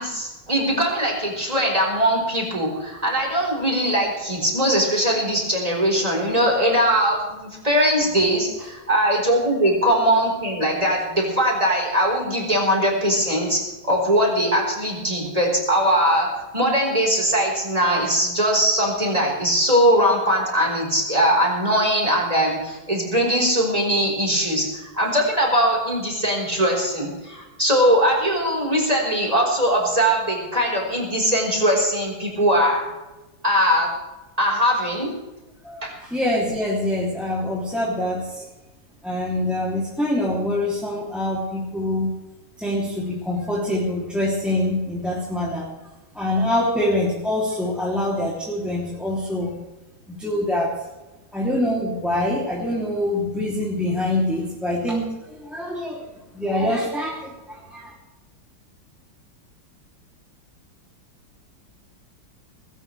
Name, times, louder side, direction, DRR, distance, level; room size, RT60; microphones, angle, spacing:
voice 1, 0.0-32.9 33.4-33.9 34.4-35.1 35.8-35.9, equal, 15° right, -2 dB, 5.0 m, -21 dB
voice 2, 35.6-38.4 39.0-42.1 42.6-45.7 46.1-49.6 50.1-50.8 51.3-56.0 56.3-57.9, left 1 dB, ahead, -5 dB, 3.0 m, -25 dB
19.5 x 18.0 x 3.5 m, 1.1 s
omnidirectional pair, 2.3 m